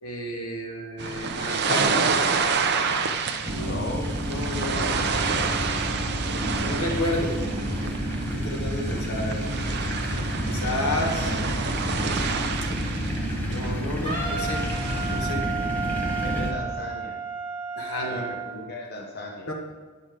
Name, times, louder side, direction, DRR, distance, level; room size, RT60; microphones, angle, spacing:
voice 1, 0.0-1.9 3.5-3.8 4.3-4.8 6.6-7.4 7.8-7.9 8.3-9.4 10.5-11.6 13.4-14.6 15.1-15.4 17.8-18.3 19.5-19.6, left 1 dB, 80° left, 2 dB, 1.5 m, -31 dB
sound 1, 1.0-15.3, right 5 dB, 50° right, 0.6 m, -29 dB
sound 2, 3.5-16.5, equal, 10° left, 0.9 m, -29 dB
voice 2, 3.7-4.1 4.7-5.0 16.2-17.2 18.0-19.5, left 2 dB, 45° left, 0 dB, 0.8 m, -36 dB
Wind instrument woodwind instrument, 14.0-18.5, right 5 dB, 25° left, 1.8 m, -32 dB
9.6 x 5.6 x 4.9 m, 1.4 s
head